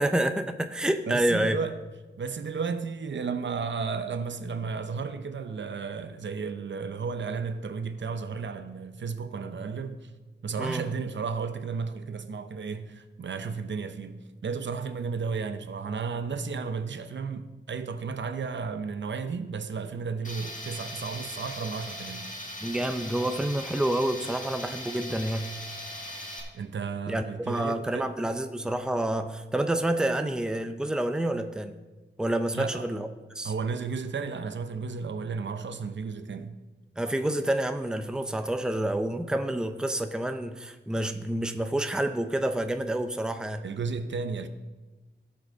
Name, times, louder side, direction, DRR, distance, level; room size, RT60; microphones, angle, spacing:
voice 1, 0.0-1.6 10.6-10.8 22.6-25.5 27.1-31.7 32.2-33.1 33.3-33.5 37.0-43.6, right 1 dB, 5° right, 0.6 m, -28 dB
voice 2, 1.1-1.7 2.2-10.1 10.4-22.3 26.5-28.1 32.5-32.9 33.4-36.6 43.6-44.5, right 5 dB, 70° right, 0.7 m, -33 dB
Tools, 20.2-26.4, left 1 dB, 40° left, 1.8 m, -39 dB
17.0 x 5.7 x 3.9 m
wide cardioid pair, 100°, 20 cm